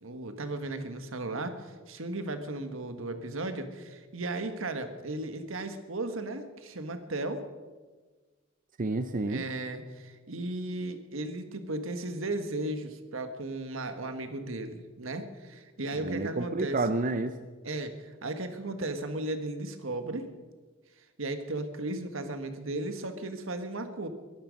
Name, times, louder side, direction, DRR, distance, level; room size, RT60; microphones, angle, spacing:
voice 1, 0.0-7.4 9.3-16.8 17.6-20.3 21.2-24.1, right 2 dB, 75° right, 8 dB, 1.6 m, -35 dB
voice 2, 8.8-9.4 15.9-17.4, right 2 dB, 40° right, 10 dB, 0.6 m, -30 dB
22.5 x 11.5 x 5.3 m, 1.3 s
head